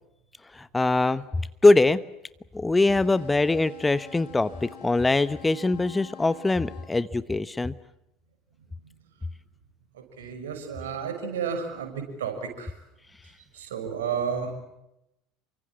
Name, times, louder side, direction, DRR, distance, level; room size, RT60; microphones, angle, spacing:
voice 1, 0.5-2.0 2.5-7.7, left 2 dB, 15° left, 16 dB, 1.0 m, -22 dB
sound 1, 2.8-6.9, left 9 dB, 60° left, 7.0 m, -47 dB
voice 2, 9.9-12.7 13.5-14.5, right 6 dB, 70° right, 6 dB, 6.3 m, -32 dB
29.0 x 25.0 x 7.6 m, 0.87 s
figure-of-eight pair, 70°, 0 cm